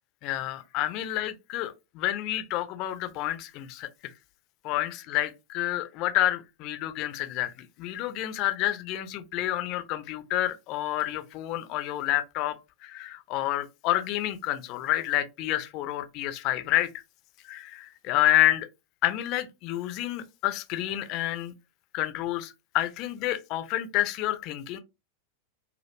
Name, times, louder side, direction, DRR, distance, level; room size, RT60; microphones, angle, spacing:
voice 1, 0.2-4.1 4.6-12.6 12.8-16.9 17.5-18.7 19.0-21.5 21.9-24.8, left 14 dB, 40° left, 0.4 m, -29 dB
2.3 x 2.1 x 3.0 m
figure-of-eight pair, 90°, 0 cm